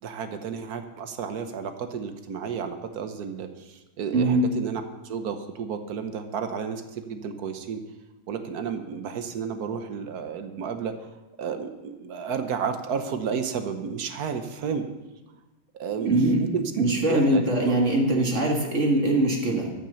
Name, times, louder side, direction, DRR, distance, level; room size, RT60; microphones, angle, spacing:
voice 1, 0.0-7.8 8.3-11.1 11.4-14.8 15.7-16.7 17.1-17.7 18.1-18.3, right 6 dB, 60° right, 7 dB, 1.3 m, -32 dB
voice 2, 4.1-4.5 16.0-16.4 16.8-19.7, right 1 dB, 40° right, 0 dB, 2.0 m, -22 dB
13.0 x 6.0 x 7.0 m, 1.1 s
omnidirectional pair, 2.1 m